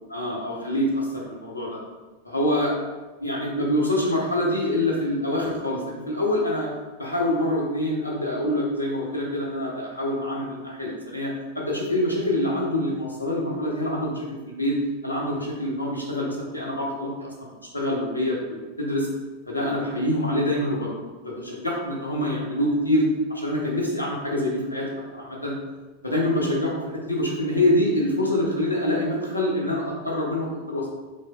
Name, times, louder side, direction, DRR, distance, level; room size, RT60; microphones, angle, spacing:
voice 1, 0.1-1.8 2.2-2.7 3.2-6.7 7.0-14.8 15.0-18.4 18.8-19.1 19.5-20.9 21.2-23.0 23.3-24.9 25.1-25.5 26.0-30.9, left 1 dB, 85° left, -3 dB, 0.7 m, -25 dB
3.3 x 2.0 x 3.6 m, 1.2 s
figure-of-eight pair, 90°, 0 cm